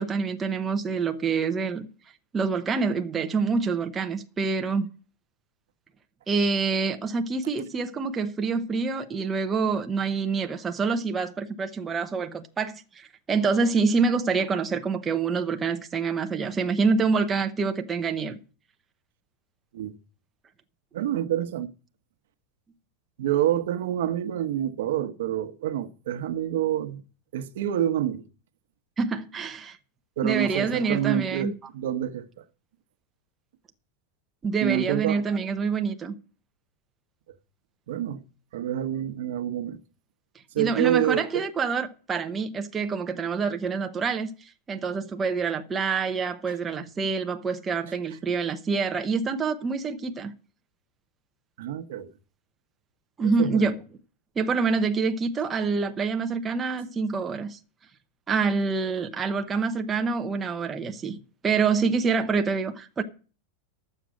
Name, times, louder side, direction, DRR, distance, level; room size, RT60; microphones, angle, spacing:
voice 1, 0.0-1.9 2.3-4.9 6.3-18.4 29.0-29.8 30.2-31.5 34.4-36.1 40.6-44.3 44.7-50.3 53.2-53.8 54.4-57.6 58.3-61.2 61.4-63.0, right 5 dB, 15° right, 0.8 m, -26 dB
voice 2, 20.9-21.7 23.2-27.0 27.3-28.2 30.2-32.4 34.6-35.2 37.9-38.2 38.5-39.8 40.5-41.4 46.5-46.6 51.6-52.1 53.2-53.6, right 11 dB, 75° right, 1.0 m, -27 dB
11.5 x 7.6 x 6.3 m
supercardioid pair, 165°, 0 cm